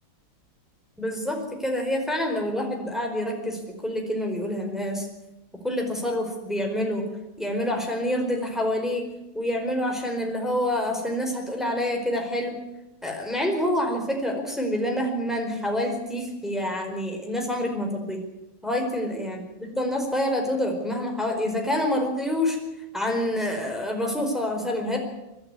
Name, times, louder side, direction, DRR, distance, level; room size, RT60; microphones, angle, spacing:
voice 1, 1.0-5.1 5.6-7.0 7.4-12.6 13.0-18.2 18.6-19.4 19.7-22.6 22.9-25.0, left 1 dB, ahead, 2 dB, 4.5 m, -27 dB
25.5 x 12.0 x 9.7 m, 0.96 s
omnidirectional pair, 2.3 m